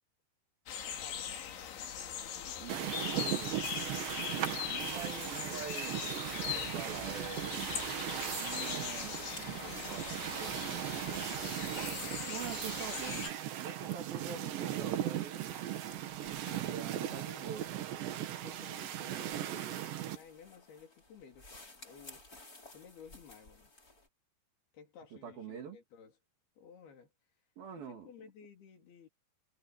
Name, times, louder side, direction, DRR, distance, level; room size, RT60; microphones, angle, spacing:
sound 1, 0.7-13.3, left 9 dB, 85° left, 5.1 m, -41 dB
voice 1, 0.9-1.4 17.0-17.5 18.4-22.2 22.7-23.7 24.7-26.1 26.6-27.1 27.9-29.1, left 7 dB, 60° left, 5.2 m, -56 dB
voice 2, 2.4-3.6 4.7-7.6 8.4-11.7 12.3-15.5 16.6-17.7 25.1-25.8 27.6-28.1, right 7 dB, 60° right, 4.2 m, -46 dB
sound 2, 2.7-20.2, right 12 dB, 75° right, 4.0 m, -38 dB
sound 3, 8.8-24.1, left 2 dB, 20° left, 5.3 m, -56 dB
omnidirectional pair, 5.1 m